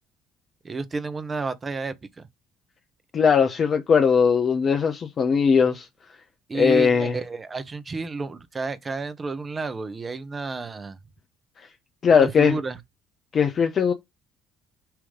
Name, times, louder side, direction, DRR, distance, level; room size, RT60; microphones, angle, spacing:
voice 1, 0.6-2.3 6.5-11.0 12.1-12.8, right 3 dB, 30° right, 1.2 m, -31 dB
voice 2, 3.1-5.9 6.5-7.2 12.0-12.6 13.3-13.9, left 6 dB, 45° left, 0.9 m, -19 dB
6.0 x 3.2 x 5.1 m
hypercardioid pair, 55°, 0 cm